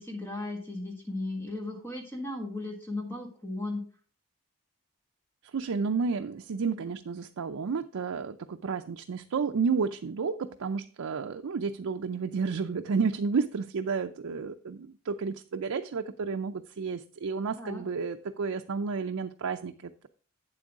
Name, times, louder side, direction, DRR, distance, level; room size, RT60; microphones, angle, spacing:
voice 1, 0.0-3.8 17.6-17.8, left 2 dB, 10° left, 1 dB, 1.5 m, -36 dB
voice 2, 5.4-20.1, right 5 dB, 75° right, 6 dB, 0.4 m, -31 dB
8.6 x 7.7 x 3.6 m, 0.41 s
head